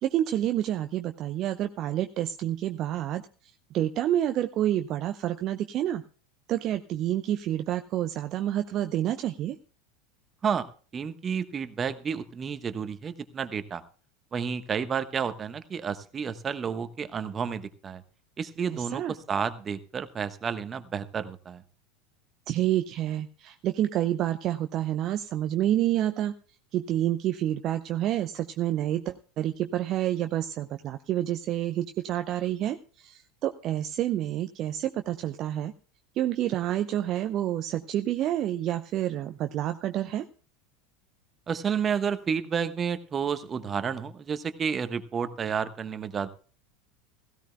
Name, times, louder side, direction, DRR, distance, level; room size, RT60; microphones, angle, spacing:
voice 1, 0.0-3.2 3.7-6.0 6.5-9.6 18.7-19.1 22.5-26.3 26.7-35.7 36.2-40.3, right 12 dB, 40° right, 8 dB, 0.7 m, -28 dB
voice 2, 10.9-13.8 14.3-18.0 18.4-21.6 41.5-46.3, right 7 dB, 25° right, 12 dB, 1.2 m, -31 dB
16.5 x 16.5 x 2.3 m, 0.39 s
figure-of-eight pair, 80°, 0 cm